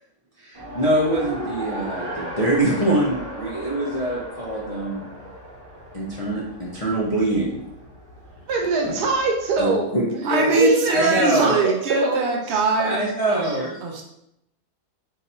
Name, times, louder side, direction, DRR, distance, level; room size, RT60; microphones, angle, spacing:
voice 1, 0.4-5.1 5.9-7.6 8.8-8.9 9.6-10.6 10.9-11.6 12.8-13.8, right 1 dB, 50° left, -7 dB, 0.4 m, -24 dB
Race car auto racing, 0.5-9.6, right 1 dB, 20° right, 1.0 m, -37 dB
voice 2, 8.5-12.6, right 3 dB, 85° right, 2 dB, 1.3 m, -23 dB
voice 3, 10.2-14.0, right 3 dB, 55° right, 1 dB, 0.8 m, -23 dB
3.9 x 2.7 x 4.2 m, 0.81 s
omnidirectional pair, 1.7 m